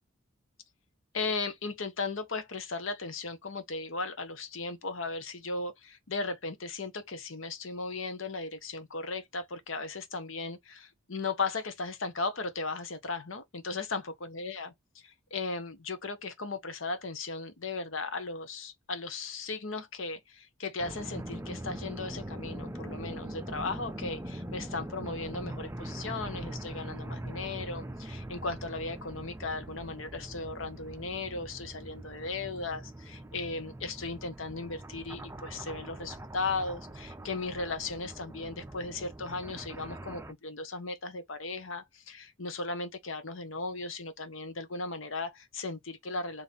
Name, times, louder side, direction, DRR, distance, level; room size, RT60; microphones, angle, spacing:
voice 1, 1.1-46.4, left 3 dB, 70° left, 1.0 m, -36 dB
sound 1, 20.8-40.3, right 1 dB, 15° right, 0.6 m, -42 dB
3.7 x 3.2 x 4.0 m
head